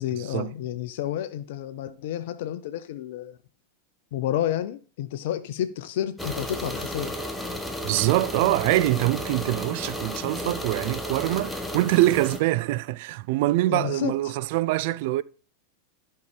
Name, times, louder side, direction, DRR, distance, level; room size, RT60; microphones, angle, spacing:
voice 1, 0.0-3.4 4.1-7.1 13.7-14.1, left 11 dB, 55° left, 0.7 m, -30 dB
sound 1, 6.2-12.4, equal, ahead, 1.3 m, -33 dB
voice 2, 7.8-15.2, right 17 dB, 50° right, 0.4 m, -24 dB
12.0 x 5.7 x 4.9 m
figure-of-eight pair, 90°, 0 cm